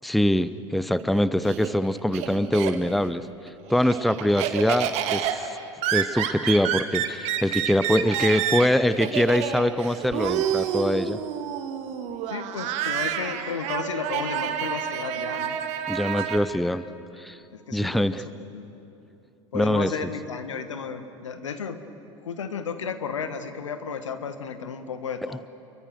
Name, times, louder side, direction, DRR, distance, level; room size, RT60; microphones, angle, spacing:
voice 1, 0.0-3.2 3.7-5.6 5.9-11.2 15.9-16.8 17.2-17.4 17.7-18.2 19.5-19.9, left 1 dB, ahead, 15 dB, 0.6 m, -23 dB
Laughter, 1.0-3.1 3.5-16.4, right 9 dB, 45° right, 1.7 m, -29 dB
voice 2, 12.3-15.6 17.5-18.2 18.5-18.7 19.5-21.8 22.2-25.4, left 6 dB, 70° left, 10 dB, 1.5 m, -33 dB
29.5 x 23.0 x 6.4 m, 2.8 s
figure-of-eight pair, 80°, 16 cm